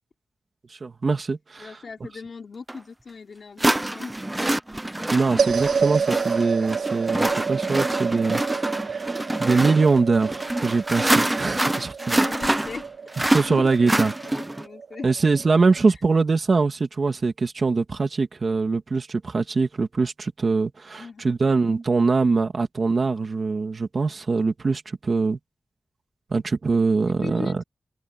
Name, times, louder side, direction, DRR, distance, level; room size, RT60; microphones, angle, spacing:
voice 1, 0.7-1.8 5.1-12.2 13.3-14.1 15.0-25.4 26.3-27.6, right 4 dB, 40° right, 2.7 m, -23 dB
voice 2, 1.6-4.2 11.5-11.9 12.1-12.9 13.2-15.1 21.0-21.3 27.1-27.6, left 5 dB, 50° left, 4.1 m, -39 dB
sound 1, 2.7-2.8 3.6-14.7, right 1 dB, 10° right, 0.5 m, -26 dB
sound 2, 5.4-15.8, right 6 dB, 85° right, 0.9 m, -29 dB
wide cardioid pair, 165°, 0 cm